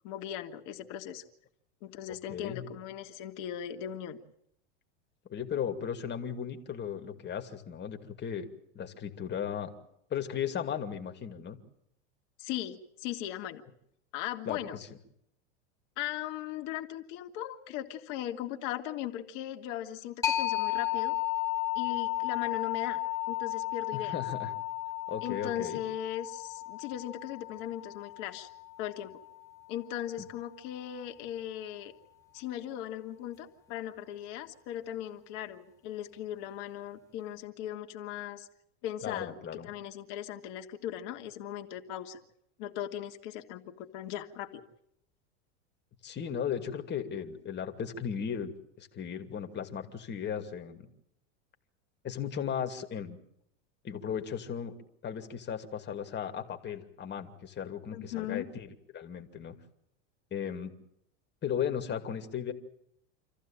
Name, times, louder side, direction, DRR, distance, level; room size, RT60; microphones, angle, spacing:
voice 1, 0.0-1.2 1.8-4.2 12.4-13.6 14.1-14.8 16.0-21.1 21.8-23.0 23.3-24.2 25.2-28.5 28.8-29.1 29.7-31.9 32.3-38.5 38.8-39.3 39.6-42.2 42.6-44.6 57.9-58.5, left 11 dB, 55° left, 5 dB, 2.2 m, -38 dB
voice 2, 2.3-2.7 5.3-8.5 8.7-9.7 10.1-11.6 14.5-14.6 23.9-24.5 25.1-25.8 30.2-30.3 39.0-39.7 46.0-50.9 52.0-53.2 53.8-54.7 55.0-59.5 60.3-60.7 61.4-62.5, left 8 dB, 30° left, 5 dB, 2.5 m, -36 dB
sound 1, 20.2-29.6, left 14 dB, 10° left, 2.6 m, -34 dB
26.5 x 15.0 x 8.9 m, 0.76 s
hypercardioid pair, 110°, 36 cm